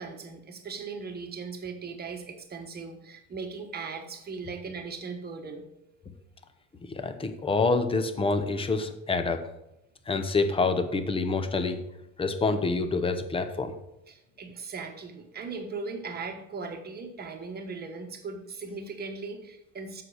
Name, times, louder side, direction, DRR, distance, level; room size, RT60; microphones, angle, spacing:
voice 1, 0.0-5.6 14.1-20.0, right 4 dB, 25° right, 4 dB, 1.2 m, -38 dB
voice 2, 6.9-9.4 10.1-11.8 12.2-13.7, left 3 dB, 15° left, 9 dB, 0.6 m, -27 dB
7.6 x 6.3 x 4.9 m, 0.85 s
cardioid pair, 140°, 40 cm